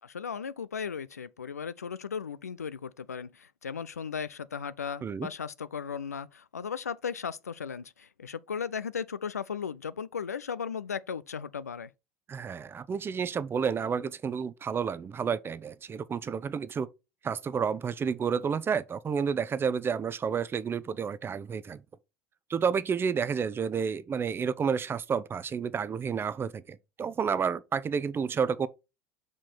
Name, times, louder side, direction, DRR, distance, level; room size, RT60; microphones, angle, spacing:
voice 1, 0.0-11.9, left 6 dB, 90° left, 0.4 m, -36 dB
voice 2, 12.3-16.9 17.2-21.8 22.5-28.7, right 6 dB, 30° right, 0.6 m, -30 dB
5.7 x 4.9 x 4.2 m
figure-of-eight pair, 70°, 8 cm